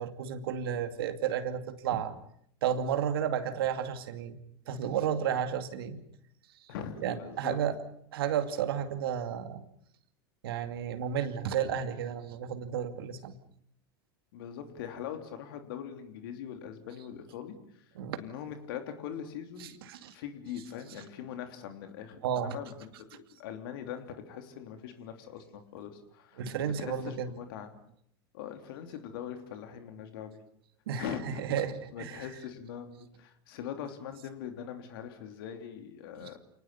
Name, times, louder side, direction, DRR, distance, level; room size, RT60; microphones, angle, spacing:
voice 1, 0.0-2.1 2.6-6.0 6.6-6.7 7.0-7.8 8.1-9.6 10.4-13.4 17.9-18.2 19.6-20.1 22.2-22.6 26.4-27.4 30.9-32.3 36.2-36.3, right 8 dB, 75° right, 9 dB, 2.4 m, -32 dB
voice 2, 6.7-7.6 14.3-17.8 18.2-19.8 20.1-27.7 28.3-30.4 31.0-31.4 31.9-36.4, left 9 dB, 70° left, 7 dB, 3.3 m, -42 dB
29.0 x 19.0 x 7.0 m, 0.67 s
hypercardioid pair, 90°, 13 cm